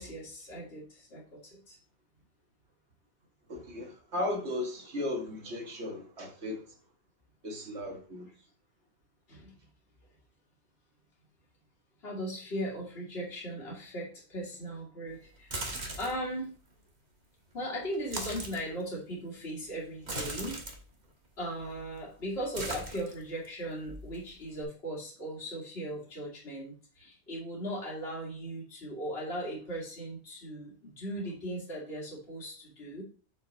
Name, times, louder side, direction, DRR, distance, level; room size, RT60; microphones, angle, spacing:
voice 1, 0.0-1.8 9.3-9.5 12.0-15.5 16.0-16.5 17.5-20.6 21.4-33.0, equal, 65° left, 2.3 m, -38 dB
voice 2, 3.5-6.6 7.4-8.3, left 1 dB, 75° right, 1.9 m, -36 dB
sound 1, 15.4-16.3 17.9-18.6 20.0-20.8 21.6-22.0 22.2-23.5 23.8-24.6, right 2 dB, 40° right, 1.5 m, -38 dB
6.9 x 5.5 x 4.0 m
omnidirectional pair, 1.1 m